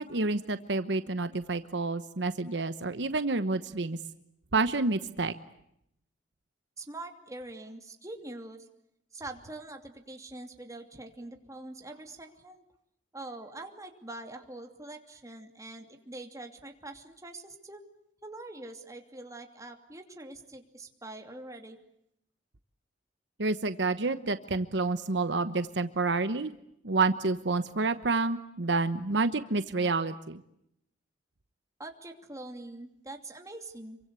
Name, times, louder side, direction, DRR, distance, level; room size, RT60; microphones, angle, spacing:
voice 1, 0.0-4.0 4.5-5.3 23.4-26.5 26.8-30.4, right 3 dB, 70° right, 11 dB, 1.1 m, -29 dB
voice 2, 6.8-8.7 9.1-12.6 13.1-17.8 18.2-21.8 31.8-34.0, right 2 dB, 20° right, 4 dB, 2.8 m, -44 dB
27.0 x 24.5 x 8.2 m, 0.76 s
head